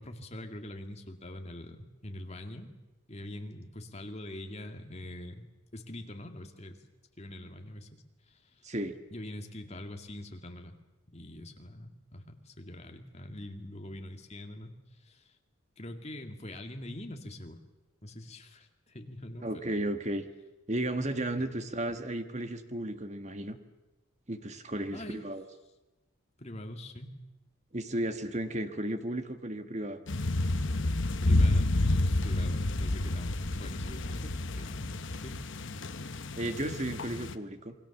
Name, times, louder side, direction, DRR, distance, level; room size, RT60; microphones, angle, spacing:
voice 1, 0.0-2.7 3.1-5.4 5.7-6.8 7.2-7.9 8.3-8.6 9.1-10.7 11.1-15.3 15.8-17.6 18.0-19.6 24.9-25.3 26.4-27.2 31.2-35.4, left 1 dB, 30° left, 5 dB, 2.2 m, -44 dB
voice 2, 8.6-9.0 19.4-20.3 20.7-23.6 24.3-25.4 27.7-30.0 36.4-37.8, right 1 dB, 30° right, 8 dB, 1.7 m, -34 dB
sound 1, 30.1-37.3, left 2 dB, 55° left, 1.0 m, -29 dB
28.0 x 22.5 x 7.2 m, 1.1 s
head